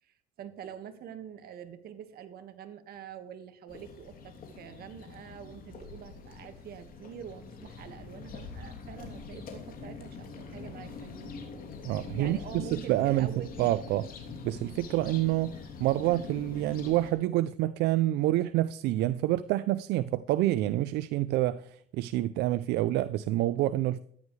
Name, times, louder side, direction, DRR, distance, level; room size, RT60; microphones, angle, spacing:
voice 1, 0.0-11.4 12.2-13.5, right 8 dB, 65° right, 1.7 m, -45 dB
sound 1, 3.7-17.1, left 5 dB, 55° left, 3.0 m, -44 dB
voice 2, 11.8-13.3 13.6-14.1 14.4-24.0, right 15 dB, 85° right, 0.5 m, -27 dB
14.0 x 10.5 x 3.3 m
cardioid pair, 110°, 17 cm